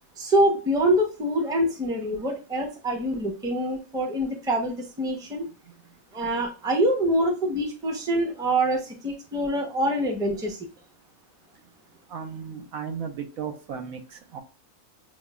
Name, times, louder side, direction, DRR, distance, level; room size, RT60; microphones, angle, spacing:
voice 1, 0.2-5.5 6.1-10.7, right 1 dB, 5° right, 1 dB, 0.4 m, -25 dB
voice 2, 12.1-14.4, right 7 dB, 85° right, 5 dB, 1.2 m, -35 dB
5.9 x 2.1 x 2.3 m, 0.35 s
omnidirectional pair, 1.4 m